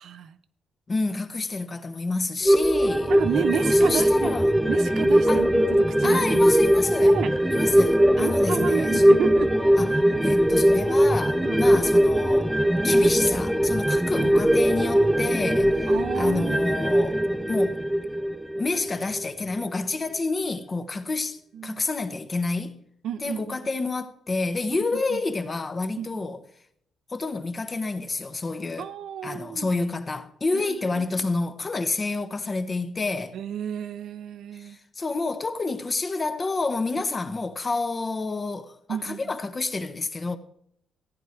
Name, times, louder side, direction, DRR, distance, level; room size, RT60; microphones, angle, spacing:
voice 1, 0.0-0.4 3.1-4.4 4.7-6.5 7.1-7.3 8.2-9.5 11.4-11.6 14.5-14.8 15.9-16.8 21.5-21.9 23.0-23.6 24.9-25.2 26.0-26.3 28.8-29.7 30.5-31.1 33.3-34.8 38.9-39.3, right 9 dB, 70° right, 0.7 m, -32 dB
voice 2, 0.9-3.1 3.5-4.5 5.3-5.5 6.0-7.2 7.5-9.0 9.8-12.5 12.8-17.8 18.6-22.8 23.2-26.4 27.1-28.9 29.2-33.4 34.5-40.4, left 3 dB, 30° left, 1.1 m, -29 dB
sound 1, 2.4-19.2 19.6-19.7, equal, 5° right, 0.6 m, -20 dB
15.0 x 9.3 x 4.6 m
cardioid pair, 90°, 0 cm